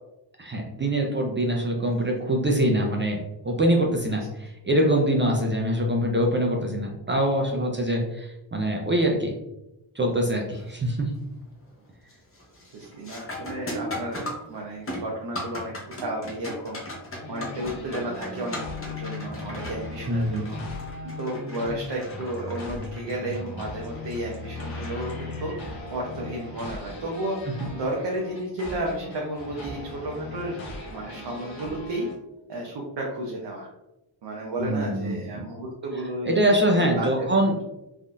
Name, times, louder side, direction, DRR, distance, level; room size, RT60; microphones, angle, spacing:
voice 1, 0.4-3.2 3.4-9.3 10.0-11.1 20.1-20.5 34.6-35.4 36.3-37.5, right 1 dB, 25° right, 1 dB, 0.3 m, -24 dB
sound 1, 10.5-10.9 11.3-11.7 12.1-25.6 28.1-28.2 29.0-29.3, left 1 dB, 30° left, 0.6 m, -39 dB
voice 2, 12.7-15.7 16.0-16.8 17.3-20.6 21.0-30.6 30.8-32.1 32.5-33.7 34.2-36.4 36.7-37.4, right 1 dB, 60° right, -2 dB, 0.7 m, -33 dB
sound 2, 17.2-32.1, left 2 dB, 70° left, 1.0 m, -38 dB
3.5 x 2.5 x 2.3 m, 0.93 s
wide cardioid pair, 130°, 48 cm